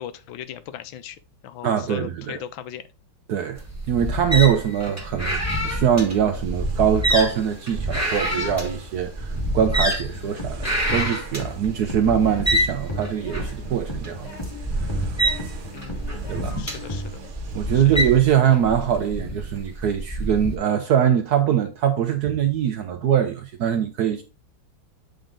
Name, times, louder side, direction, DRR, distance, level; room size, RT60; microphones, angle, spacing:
voice 1, 0.0-2.8 15.7-17.2 17.7-18.0, left 10 dB, 75° left, 1.3 m, -38 dB
voice 2, 1.6-2.4 3.3-3.6 3.9-14.3 14.8-15.0 16.3-16.6 17.5-24.2, right 9 dB, 70° right, 1.0 m, -22 dB
sound 1, 3.6-20.6, equal, 10° right, 1.1 m, -27 dB
sound 2, 6.4-18.4, right 4 dB, 90° right, 1.9 m, -46 dB
sound 3, 10.0-17.3, left 1 dB, 15° left, 1.1 m, -35 dB
7.9 x 3.8 x 3.7 m
omnidirectional pair, 2.2 m